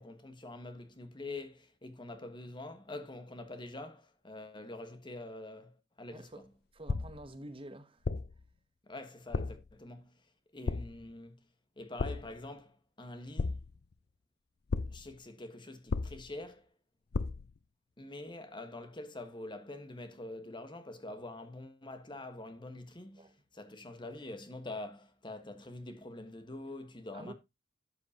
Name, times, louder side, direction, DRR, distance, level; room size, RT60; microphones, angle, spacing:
voice 1, 0.0-6.5 8.8-10.2 10.5-11.4 11.8-13.6 14.9-16.7 18.0-27.3, left 2 dB, 25° left, 1.3 m, -45 dB
voice 2, 6.1-6.4 6.7-8.0 23.2-23.3 27.1-27.3, right 1 dB, 30° right, 0.9 m, -48 dB
sound 1, 6.9-7.3 8.0-8.5 9.3-9.7 10.7-11.1 12.0-12.4 13.4-13.9 14.7-15.1 15.9-16.4 17.1-17.6, left 4 dB, 60° left, 0.5 m, -35 dB
12.0 x 7.7 x 2.8 m
head